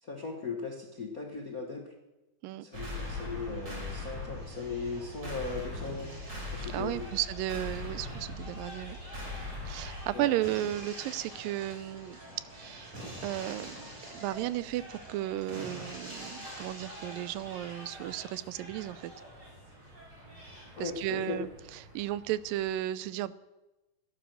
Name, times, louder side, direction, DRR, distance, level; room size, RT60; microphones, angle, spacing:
voice 1, 0.0-1.9 2.6-6.1 6.5-7.1 10.1-10.3 20.8-21.4, left 4 dB, 75° left, 2 dB, 0.8 m, -38 dB
sound 1, 2.7-22.7, left 1 dB, 30° right, 4.6 m, -42 dB
voice 2, 6.7-9.0 9.7-12.2 12.5-13.8 14.1-19.1 20.8-23.3, right 14 dB, 85° right, 17 dB, 2.3 m, -34 dB
16.0 x 10.0 x 6.3 m, 1.0 s
omnidirectional pair, 3.9 m